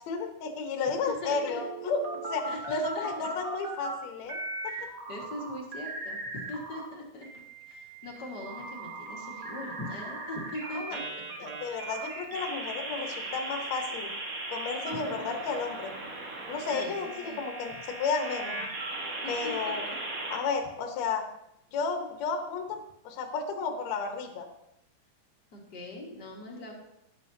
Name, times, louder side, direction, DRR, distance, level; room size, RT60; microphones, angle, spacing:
voice 1, 0.1-2.0 2.3-4.4 4.6-4.7 10.8-11.0 11.4-14.1 14.5-16.0 16.5-18.6 19.3-19.8 20.3-21.3 21.7-24.5, left 4 dB, 60° left, 4 dB, 2.1 m, -32 dB
voice 2, 0.8-1.6 2.5-3.3 4.5-7.3 7.7-11.0 12.0-12.1 14.9-15.3 16.7-17.4 19.2-19.5 19.9-20.0 25.5-26.7, left 1 dB, 40° left, -2 dB, 1.7 m, -41 dB
sound 1, 1.3-3.9 4.3-6.8 7.2-20.4, right 2 dB, 75° right, 0.8 m, -38 dB
17.0 x 7.9 x 2.8 m, 0.83 s
omnidirectional pair, 4.0 m